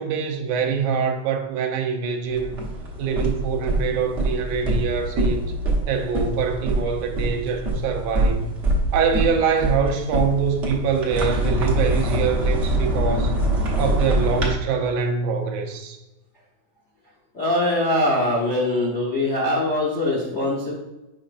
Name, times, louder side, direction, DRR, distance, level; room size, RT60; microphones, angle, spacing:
voice 1, 0.0-2.6 3.0-5.4 5.9-8.5 8.9-13.3 13.8-16.0, right 6 dB, 90° right, 2.3 m, -24 dB
sound 1, 2.3-14.5, right 1 dB, 55° right, 0.7 m, -24 dB
voice 2, 17.3-20.7, left 1 dB, 85° left, 0.6 m, -22 dB
7.5 x 5.3 x 2.5 m
omnidirectional pair, 3.5 m